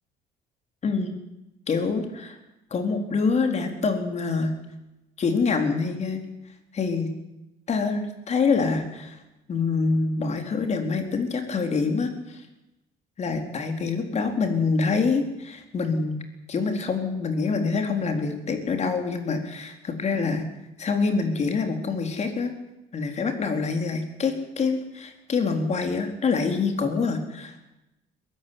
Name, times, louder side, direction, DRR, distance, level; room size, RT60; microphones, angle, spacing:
voice 1, 0.8-1.1 1.7-2.4 2.7-4.5 5.2-6.2 6.7-7.1 7.7-9.2 9.5-12.5 13.2-16.2 16.5-20.5 20.8-22.5 22.9-27.6, left 4 dB, 40° left, 5 dB, 4.3 m, -26 dB
22.0 x 14.5 x 9.7 m, 0.96 s
cardioid pair, 110°, 17 cm